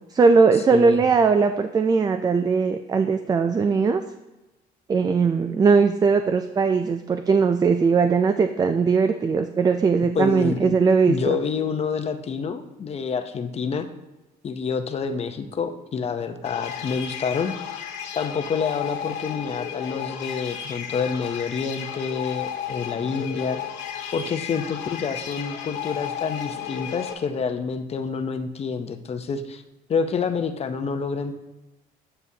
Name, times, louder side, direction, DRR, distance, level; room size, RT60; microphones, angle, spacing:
voice 1, 0.1-4.0 4.9-11.4, right 5 dB, 25° right, 8 dB, 0.3 m, -19 dB
voice 2, 0.7-1.0 10.1-10.7 11.1-13.9 14.4-17.5 18.1-23.6 24.1-29.6 29.9-31.3, left 5 dB, 40° left, 7 dB, 0.7 m, -28 dB
sound 1, 16.4-27.1, left 9 dB, 85° left, 1.0 m, -33 dB
9.3 x 6.8 x 2.8 m, 1.0 s
cardioid pair, 110°, 17 cm